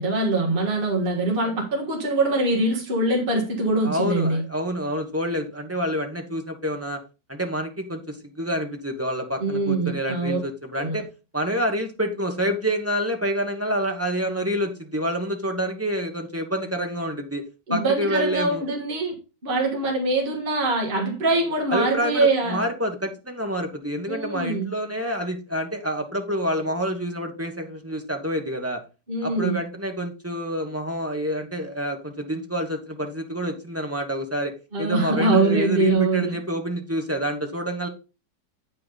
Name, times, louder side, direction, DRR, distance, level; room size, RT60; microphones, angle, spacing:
voice 1, 0.0-4.4 9.4-10.4 10.8-11.0 17.7-19.1 19.4-22.6 24.1-24.8 29.1-29.6 34.7-36.4, right 2 dB, 30° right, -1 dB, 1.9 m, -23 dB
voice 2, 3.8-7.0 7.3-11.0 11.3-17.4 17.7-18.6 21.7-28.8 29.2-34.5 34.8-37.9, equal, 10° right, 4 dB, 1.0 m, -28 dB
8.7 x 5.8 x 4.0 m, 0.30 s
omnidirectional pair, 1.9 m